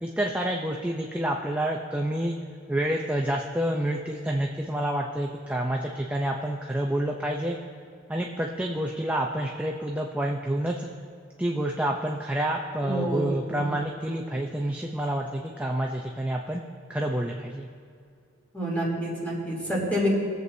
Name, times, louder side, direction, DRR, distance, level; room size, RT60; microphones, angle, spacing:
voice 1, 0.0-2.3 2.7-7.6 8.1-10.9 11.4-16.6 16.9-17.7, right 1 dB, 5° right, 0 dB, 0.6 m, -28 dB
voice 2, 12.8-13.7 18.5-20.1, equal, 10° left, -6 dB, 3.1 m, -28 dB
22.0 x 7.8 x 2.7 m, 2.3 s
head